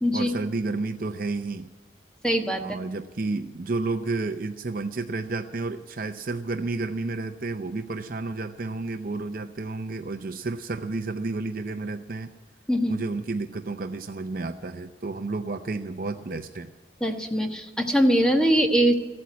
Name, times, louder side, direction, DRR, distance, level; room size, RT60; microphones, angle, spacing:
voice 1, 0.1-1.7 2.6-12.3 12.9-16.7, right 3 dB, 50° right, 7 dB, 0.5 m, -31 dB
voice 2, 2.2-2.8 12.7-13.0 17.0-18.9, equal, 5° left, 3 dB, 1.2 m, -22 dB
14.5 x 8.7 x 9.5 m, 1.2 s
head